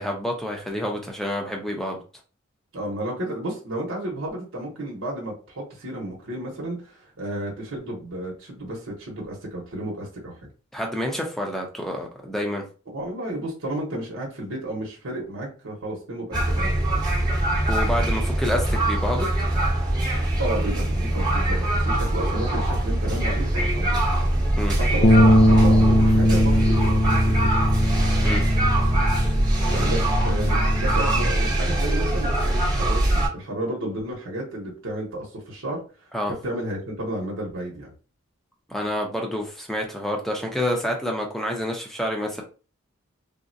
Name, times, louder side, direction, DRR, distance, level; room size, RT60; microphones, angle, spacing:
voice 1, 0.0-2.0 10.7-12.6 17.7-19.3 24.6-24.7 28.2-28.4 36.1-36.3 38.7-42.4, equal, ahead, 1 dB, 0.6 m, -28 dB
voice 2, 2.7-10.3 12.9-16.9 20.4-23.9 24.8-27.8 29.7-35.8 36.3-37.9, right 1 dB, 80° right, -3 dB, 0.9 m, -32 dB
sound 1, 16.3-33.3, right 1 dB, 20° right, 0.9 m, -22 dB
sound 2, 25.0-31.3, left 1 dB, 45° left, 0.4 m, -21 dB
3.7 x 2.1 x 2.6 m, 0.35 s
head